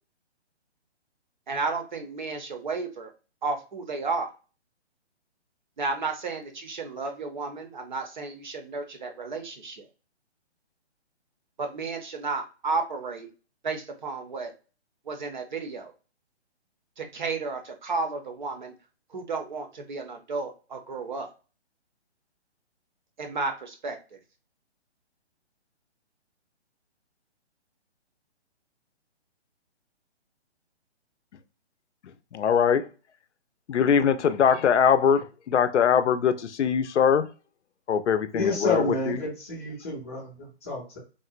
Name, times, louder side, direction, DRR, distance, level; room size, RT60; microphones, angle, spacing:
voice 1, 1.5-3.1 3.4-4.3 5.8-9.9 11.6-13.3 13.6-14.5 15.1-15.9 17.0-18.7 19.1-21.3 23.2-24.2, right 4 dB, 45° right, 0.6 m, -32 dB
voice 2, 32.3-32.9 33.7-37.3 37.9-39.2, left 7 dB, 85° left, 0.5 m, -22 dB
voice 3, 38.3-41.0, left 2 dB, 15° left, 0.5 m, -30 dB
3.7 x 2.1 x 2.4 m
hypercardioid pair, 160°, 34 cm